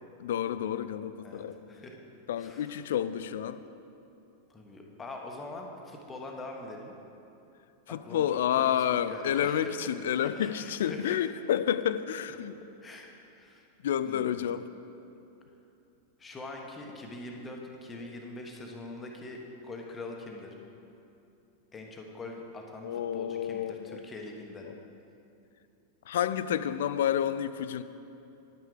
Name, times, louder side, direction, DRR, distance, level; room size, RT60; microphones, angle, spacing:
voice 1, 0.2-1.6 2.3-3.6 7.9-12.6 13.8-14.6 22.8-24.0 24.6-24.8 26.1-27.8, left 10 dB, 60° left, 13 dB, 0.4 m, -30 dB
voice 2, 1.2-2.0 2.4-2.8 4.5-6.9 7.9-8.3 8.5-11.2 12.8-13.6 14.0-14.4 16.2-20.6 21.7-24.7, left 2 dB, 15° left, 1 dB, 1.3 m, -43 dB
10.5 x 9.3 x 4.9 m, 2.8 s
figure-of-eight pair, 90°, 0 cm